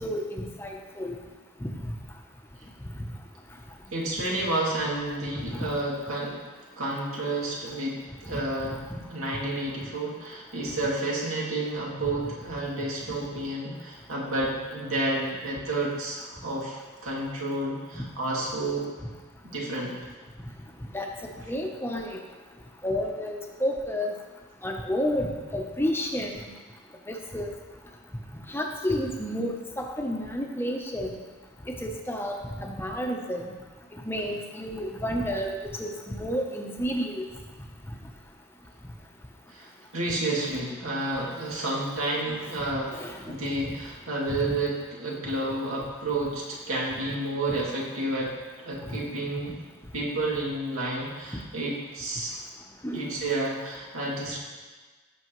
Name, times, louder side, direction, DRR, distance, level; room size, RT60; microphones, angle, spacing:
voice 1, 0.0-1.1 1.6-1.7 5.5-5.6 8.3-8.4 17.9-18.0 20.9-21.1 21.5-22.2 22.8-24.1 24.6-26.5 27.1-27.5 28.5-31.2 31.7-33.5 34.1-37.3 42.3-42.4 42.9-43.2 52.8-53.1, equal, 10° left, 1 dB, 0.8 m, -31 dB
voice 2, 3.9-6.4 6.8-8.8 9.1-18.9 19.5-20.0 39.5-43.0 43.3-48.3 48.6-49.5 49.9-52.4 52.9-54.4, right 2 dB, 90° right, -4 dB, 2.6 m, -30 dB
17.0 x 6.2 x 3.1 m, 1.4 s
head